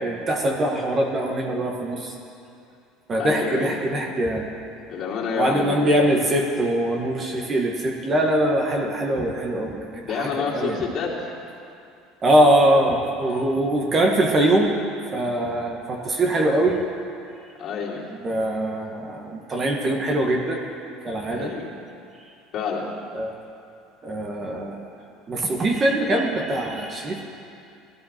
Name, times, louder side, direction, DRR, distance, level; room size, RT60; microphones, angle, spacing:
voice 1, 0.0-2.1 3.1-4.5 5.4-10.8 12.2-14.8 15.1-16.8 18.2-20.6 21.0-21.5 23.1-23.3 24.0-24.9 25.3-27.3, right 1 dB, 25° right, 1 dB, 1.4 m, -22 dB
voice 2, 3.2-3.7 4.9-5.9 10.0-11.3 13.3-13.4 17.6-18.0 21.3-21.7 22.5-22.8, left 5 dB, 50° left, -4 dB, 3.0 m, -28 dB
17.5 x 13.0 x 4.4 m, 2.6 s
cardioid pair, 135°, 0 cm